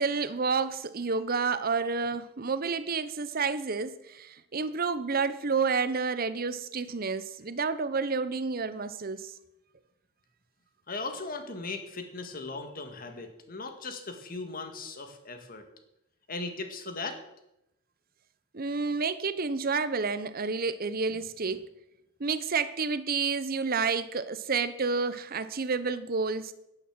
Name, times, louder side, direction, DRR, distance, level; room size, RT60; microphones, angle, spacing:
voice 1, 0.0-9.3 18.5-21.7 22.2-26.5, right 4 dB, 45° right, 14 dB, 0.8 m, -30 dB
voice 2, 10.9-15.6 16.3-17.2, left 3 dB, 45° left, 7 dB, 1.9 m, -38 dB
10.5 x 10.0 x 7.4 m, 0.86 s
head